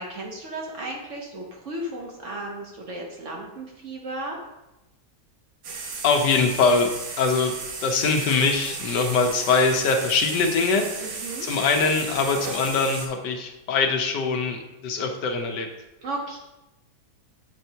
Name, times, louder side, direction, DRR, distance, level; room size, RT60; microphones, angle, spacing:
voice 1, 0.0-4.4 11.0-11.5 16.0-16.4, right 1 dB, 55° right, -1 dB, 1.1 m, -34 dB
sound 1, 5.6-13.1, right 4 dB, 75° right, 1.5 m, -35 dB
voice 2, 6.0-6.9 7.2-7.6 7.8-15.7, left 4 dB, 85° left, 4 dB, 1.4 m, -23 dB
7.8 x 4.4 x 2.7 m, 0.97 s
omnidirectional pair, 1.8 m